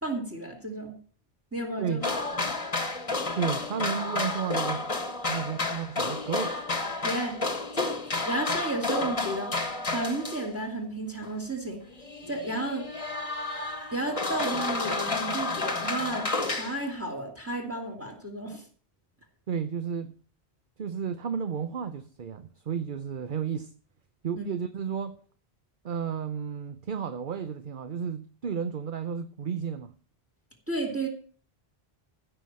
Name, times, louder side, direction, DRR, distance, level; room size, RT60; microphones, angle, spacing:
voice 1, 0.0-1.0 1.5-2.0 2.4-2.6 7.0-7.4 7.7-9.5 9.9-11.8 12.3-12.8 13.9-18.6 24.4-24.5 30.7-31.1, right 2 dB, 15° right, 2.5 m, -32 dB
sound 1, 2.0-10.6 11.2-11.3 11.9-16.9, left 3 dB, 35° left, 1.5 m, -31 dB
voice 2, 3.4-4.8 5.3-6.6 19.5-20.1 20.8-23.7 24.2-25.2 25.8-29.9, right 7 dB, 55° right, 0.9 m, -32 dB
15.0 x 5.8 x 7.4 m
omnidirectional pair, 1.1 m